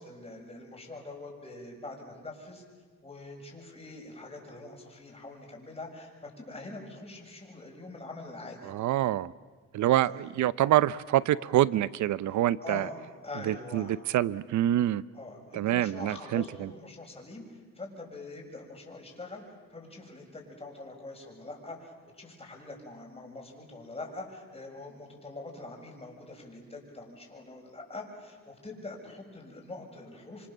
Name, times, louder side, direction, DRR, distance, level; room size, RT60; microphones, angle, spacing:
voice 1, 0.0-2.6 3.0-8.7 10.1-10.3 12.6-13.0 13.2-14.0 15.1-19.4 19.7-30.5, left 2 dB, 20° left, 0 dB, 7.0 m, -44 dB
voice 2, 8.6-9.3 9.7-12.9 13.4-15.0 15.5-16.7, right 13 dB, 70° right, 19 dB, 0.7 m, -26 dB
26.0 x 26.0 x 7.4 m, 1.5 s
cardioid pair, 90°, 30 cm